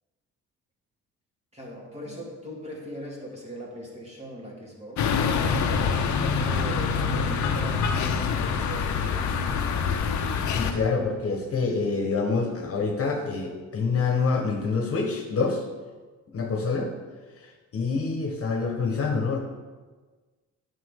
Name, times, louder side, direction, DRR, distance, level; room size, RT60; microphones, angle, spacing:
voice 1, 1.5-6.0 6.5-7.9 8.5-9.5, equal, 20° right, -3 dB, 2.6 m, -40 dB
sound 1, 5.0-10.7, left 6 dB, 70° left, 0.8 m, -25 dB
voice 2, 10.5-15.6 16.3-16.9 17.4-19.4, left 4 dB, 50° left, 2 dB, 1.3 m, -26 dB
9.6 x 6.2 x 3.7 m, 1.3 s
cardioid pair, 90°, 30 cm